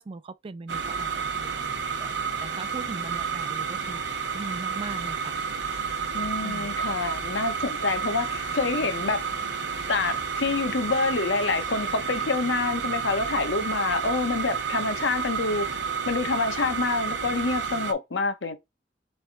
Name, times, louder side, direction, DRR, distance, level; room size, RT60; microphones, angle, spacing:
voice 1, 0.0-2.1 2.4-5.4 6.4-6.8, right 3 dB, 30° right, 0.3 m, -40 dB
sound 1, 0.7-17.9, right 6 dB, 70° right, 0.7 m, -31 dB
voice 2, 6.1-9.2 9.9-15.7 16.1-18.6, left 3 dB, 85° left, 0.7 m, -27 dB
3.4 x 3.4 x 3.9 m
head